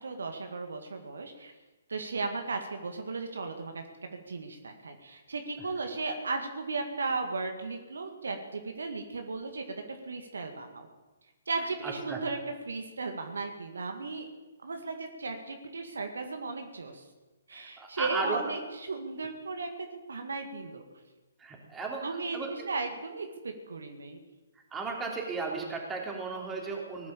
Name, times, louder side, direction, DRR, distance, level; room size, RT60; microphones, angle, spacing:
voice 1, 0.0-1.5 1.9-10.9 11.5-14.3 14.6-17.0 17.5-20.8 22.0-24.2, right 3 dB, 65° right, 5 dB, 1.9 m, -36 dB
voice 2, 11.8-12.2 17.5-18.4 21.4-22.0 22.3-22.7 24.7-27.1, right 4 dB, 10° right, 0 dB, 3.4 m, -35 dB
19.0 x 10.5 x 7.4 m, 1.2 s
figure-of-eight pair, 130°, 0 cm